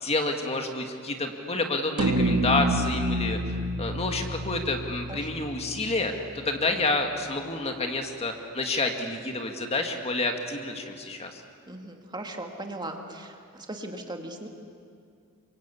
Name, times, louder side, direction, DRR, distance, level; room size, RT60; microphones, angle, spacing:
voice 1, 0.0-3.4 3.8-11.4, left 2 dB, 30° left, 4 dB, 2.1 m, -29 dB
sound 1, 2.0-6.5, equal, 85° right, 1.7 m, -28 dB
voice 2, 5.1-5.4 11.7-14.5, right 1 dB, 20° right, 3 dB, 2.2 m, -38 dB
28.5 x 25.0 x 8.5 m, 2.3 s
head